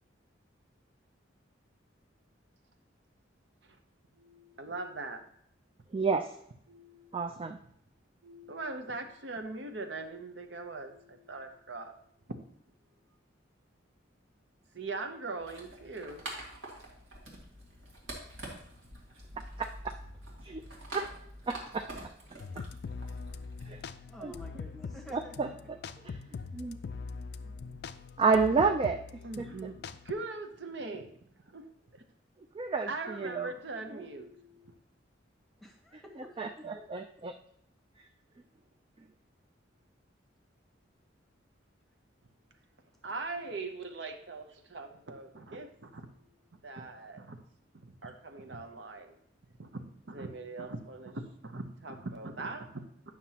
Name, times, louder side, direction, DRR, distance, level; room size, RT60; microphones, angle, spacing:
voice 1, 4.2-5.2 6.7-7.1 8.2-11.9 14.7-16.2 29.2-31.1 31.5-31.7 31.9-32.0 32.9-34.7 43.0-46.1 46.6-47.4 47.8-49.2 49.6-52.8, right 3 dB, 65° right, 6 dB, 0.8 m, -41 dB
voice 2, 5.9-6.3 7.1-7.6 19.6-19.7 20.4-20.6 20.9-21.1 21.5-21.9 23.7-23.8 24.2-24.3 25.1-25.5 26.0-26.2 26.5-26.8 28.2-29.0 29.4-29.5 32.6-33.5 33.9-34.0 36.4-37.3, right 4 dB, 25° right, 5 dB, 0.3 m, -29 dB
sound 1, 15.4-23.8, right 1 dB, 85° right, 1.8 m, -46 dB
voice 3, 22.2-22.6 23.0-23.6 24.1-25.6 25.9-26.0 35.6-36.8, equal, ahead, 1 dB, 1.0 m, -51 dB
sound 2, 22.4-30.1, left 5 dB, 55° left, 0.3 m, -42 dB
9.2 x 5.9 x 2.8 m, 0.68 s
head